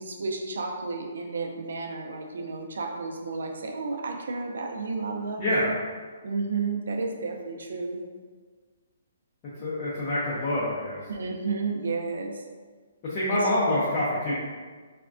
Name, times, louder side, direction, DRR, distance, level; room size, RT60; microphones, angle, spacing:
voice 1, 0.0-5.7 6.2-8.0 11.1-12.4 13.3-13.5, right 4 dB, 75° right, 2 dB, 0.4 m, -32 dB
voice 2, 5.4-5.7 9.6-11.0 13.0-14.3, left 1 dB, 25° left, -9 dB, 0.5 m, -26 dB
3.3 x 2.1 x 2.4 m, 1.5 s
hypercardioid pair, 170°, 0 cm